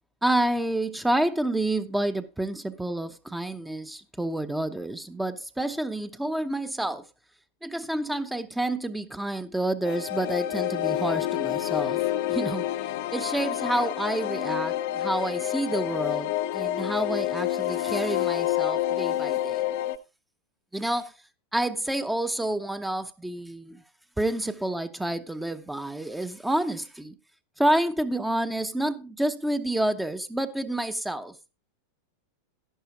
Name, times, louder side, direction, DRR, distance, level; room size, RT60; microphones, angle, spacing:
voice 1, 0.2-7.1 7.6-12.0 12.3-12.7 13.1-19.7 20.7-21.1 21.5-23.8 24.2-27.2 27.6-31.4, right 1 dB, 5° right, 0.7 m, -29 dB
sound 1, 9.8-20.0, left 13 dB, 50° left, 0.7 m, -28 dB
12.0 x 11.0 x 2.9 m
figure-of-eight pair, 90°, 0 cm